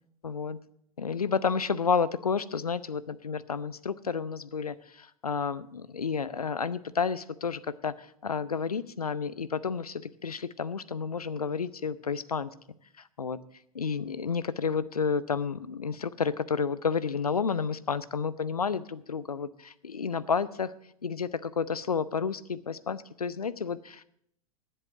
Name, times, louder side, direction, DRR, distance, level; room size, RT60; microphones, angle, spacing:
voice 1, 0.2-0.6 1.0-12.5 13.2-13.4 13.7-20.7 21.0-24.0, left 5 dB, 80° left, 17 dB, 0.6 m, -31 dB
10.5 x 7.8 x 7.9 m, 0.71 s
figure-of-eight pair, 90°, 19 cm